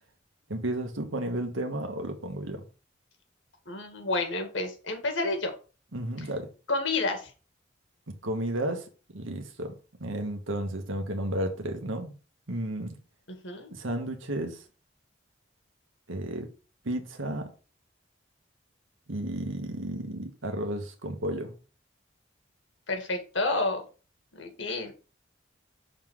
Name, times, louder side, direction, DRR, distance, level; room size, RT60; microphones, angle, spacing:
voice 1, 0.5-2.6 5.9-6.5 8.1-9.7 10.0-12.1 12.5-12.9 13.7-14.6 16.1-16.5 16.8-17.5 19.1-21.5, right 1 dB, 85° right, 1.4 m, -33 dB
voice 2, 3.7-5.5 6.2-6.3 6.7-7.3 13.3-13.7 22.9-23.8 24.3-24.9, left 2 dB, 75° left, 2.0 m, -30 dB
6.5 x 3.9 x 6.2 m
head